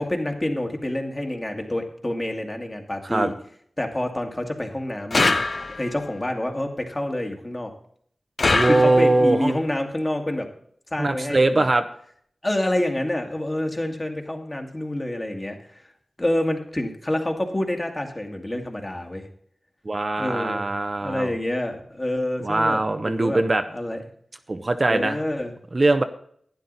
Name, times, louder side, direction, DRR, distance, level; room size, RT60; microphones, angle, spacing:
voice 1, 0.0-3.3 3.8-5.3 5.8-7.7 8.6-10.5 10.9-11.7 12.4-15.8 16.2-19.3 20.2-20.7 21.0-23.4 23.7-24.0 24.9-25.5, left 1 dB, 25° left, 3 dB, 2.0 m, -27 dB
Steel Spring Bear Trap, 5.1-6.0 8.4-9.3, left 3 dB, 55° left, 0.6 m, -23 dB
voice 2, 8.5-9.5 11.0-11.8 19.8-21.3 22.4-23.6 24.5-25.2 25.7-26.0, right 2 dB, 45° right, 8 dB, 0.8 m, -21 dB
11.5 x 9.5 x 4.1 m, 0.63 s
cardioid pair, 45°, 0 cm